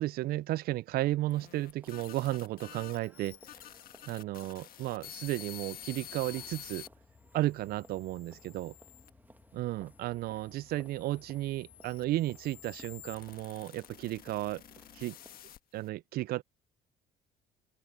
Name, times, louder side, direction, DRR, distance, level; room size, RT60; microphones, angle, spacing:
voice 1, 0.0-3.4 4.0-6.9 7.3-8.7 9.5-14.6 14.9-15.2 15.7-16.4, right 16 dB, 65° right, 0.4 m, -34 dB
sound 1, 1.1-6.9 7.5-9.1 9.9-15.9, left 12 dB, 60° left, 1.5 m, -50 dB
sound 2, 1.2-15.4, right 2 dB, 10° right, 1.7 m, -61 dB
sound 3, 5.9-13.4, left 5 dB, 30° left, 4.7 m, -63 dB
open air
cardioid pair, 110°, 17 cm